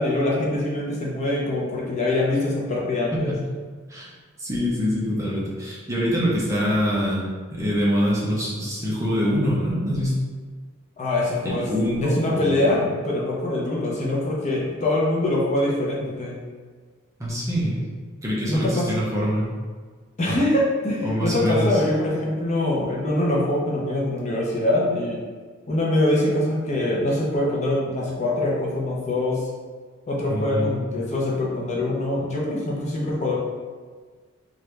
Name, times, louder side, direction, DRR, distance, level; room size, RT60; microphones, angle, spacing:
voice 1, 0.0-3.3 11.0-11.7 12.0-16.4 18.5-18.9 20.2-25.2 25.7-29.5 30.1-33.4, left 1 dB, 35° left, -4 dB, 0.6 m, -24 dB
voice 2, 4.4-10.2 11.4-12.7 17.2-17.9 18.2-19.5 21.0-21.8 30.3-30.7, equal, 15° right, -6 dB, 0.6 m, -24 dB
3.1 x 2.5 x 3.2 m, 1.5 s
head